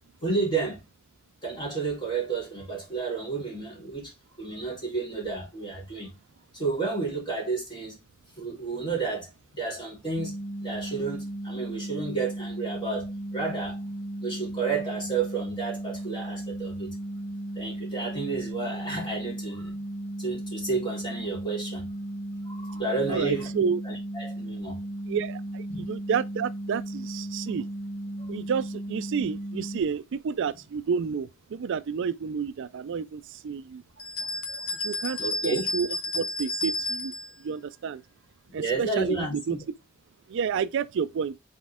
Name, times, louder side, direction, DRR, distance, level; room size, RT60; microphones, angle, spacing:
voice 1, 0.2-0.8 1.4-4.1 4.4-6.1 6.5-7.9 8.4-10.3 10.6-13.8 14.2-16.9 17.6-19.7 20.2-21.9 22.5-23.5 23.9-24.8 25.7-25.8 28.2-28.3 34.5-34.6 35.2-35.6 38.5-39.6, right 4 dB, 25° left, 3.7 m, -31 dB
sound 1, 10.2-29.8, right 1 dB, 55° left, 1.0 m, -36 dB
voice 2, 23.1-23.8 25.1-27.7 28.3-33.8 34.8-37.1 37.4-38.0 38.5-39.6 40.3-41.3, right 6 dB, 60° right, 0.4 m, -30 dB
sound 2, 34.0-37.3, left 2 dB, 85° left, 1.2 m, -31 dB
6.2 x 4.4 x 3.6 m
head